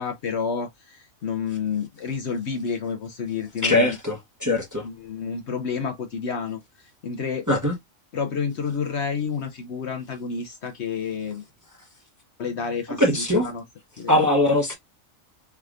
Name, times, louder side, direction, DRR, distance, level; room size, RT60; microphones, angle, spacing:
voice 1, 0.0-4.0 4.8-6.6 7.0-7.6 8.1-11.4 12.4-13.6 14.0-14.3, left 6 dB, 60° left, 0.9 m, -30 dB
voice 2, 3.6-4.9 7.5-7.7 13.0-13.5 14.1-14.7, left 1 dB, 15° right, 0.9 m, -21 dB
4.6 x 3.5 x 2.4 m
omnidirectional pair, 1.4 m